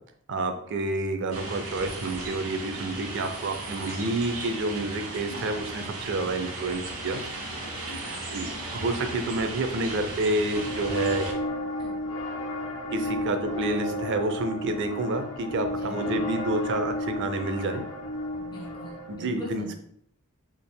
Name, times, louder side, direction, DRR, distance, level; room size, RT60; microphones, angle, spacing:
voice 1, 0.3-7.2 8.3-8.5 8.7-11.3 12.9-17.8 19.1-19.7, right 2 dB, 55° right, 7 dB, 0.5 m, -29 dB
sound 1, 1.3-11.3, right 2 dB, 70° right, 0.9 m, -36 dB
voice 2, 7.8-8.3 11.8-11.9 15.6-16.3 18.3-19.7, equal, 20° left, -3 dB, 1.0 m, -42 dB
sound 2, 10.5-19.1, left 1 dB, 60° left, 0.7 m, -32 dB
4.1 x 3.4 x 2.2 m, 0.67 s
head